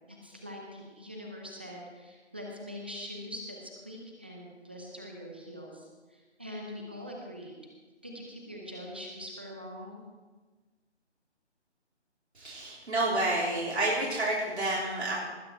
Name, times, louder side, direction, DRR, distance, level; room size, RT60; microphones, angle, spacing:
voice 1, 0.1-7.5 8.0-10.0, equal, 10° right, 0 dB, 0.6 m, -43 dB
voice 2, 12.4-15.2, right 2 dB, 70° right, -5 dB, 3.6 m, -29 dB
19.5 x 8.8 x 4.7 m, 1.3 s
figure-of-eight pair, 155°, 35 cm